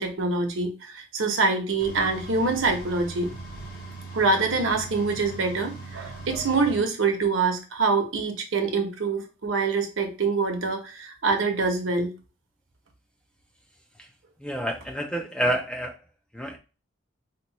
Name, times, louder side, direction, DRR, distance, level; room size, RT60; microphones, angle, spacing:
voice 1, 0.0-3.3 4.1-12.1, right 3 dB, 80° right, 4 dB, 0.9 m, -25 dB
sound 1, 1.8-6.8, right 3 dB, 45° left, 0.8 m, -40 dB
voice 2, 14.4-16.0 16.3-16.6, equal, 5° left, 4 dB, 0.3 m, -28 dB
2.9 x 2.2 x 4.0 m, 0.33 s
head